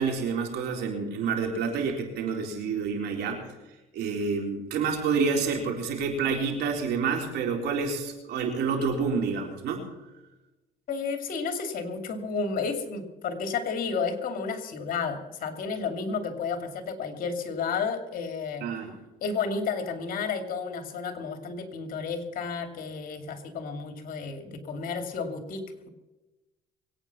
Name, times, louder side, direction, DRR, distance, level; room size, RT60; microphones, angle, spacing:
voice 1, 0.0-3.4 3.9-9.8 18.6-19.0, right 5 dB, 80° right, 2 dB, 3.9 m, -28 dB
voice 2, 10.9-18.7 19.2-25.9, left 5 dB, 55° left, 6 dB, 2.5 m, -32 dB
23.0 x 9.1 x 6.0 m, 1.1 s
cardioid pair, 110°, 17 cm